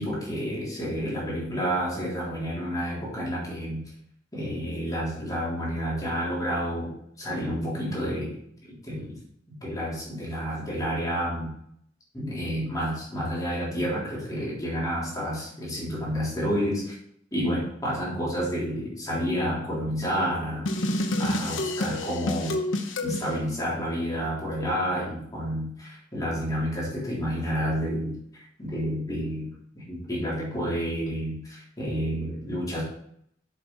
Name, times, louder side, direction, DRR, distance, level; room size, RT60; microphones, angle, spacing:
voice 1, 0.0-3.8 4.3-8.4 8.9-9.2 9.6-11.5 12.1-17.0 17.3-20.7 21.2-22.5 23.0-28.2 28.6-29.5 29.8-32.8, equal, 20° left, -7 dB, 3.7 m, -29 dB
sound 1, 20.7-23.3, left 1 dB, 90° left, 1.0 m, -28 dB
7.5 x 7.2 x 4.1 m, 0.70 s
head